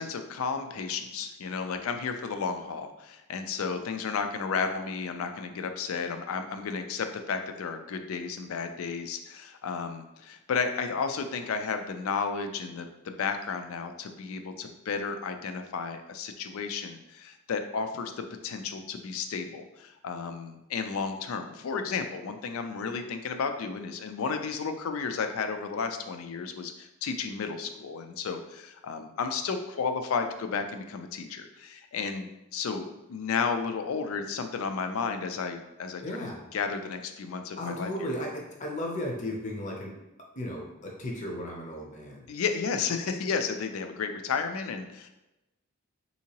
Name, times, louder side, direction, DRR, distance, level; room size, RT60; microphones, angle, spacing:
voice 1, 0.0-38.1 42.3-45.1, left 5 dB, 80° left, 7 dB, 0.4 m, -33 dB
voice 2, 36.0-36.4 37.5-39.9 40.4-42.3, left 1 dB, 35° left, 0 dB, 0.5 m, -35 dB
3.6 x 2.8 x 2.8 m, 0.95 s
head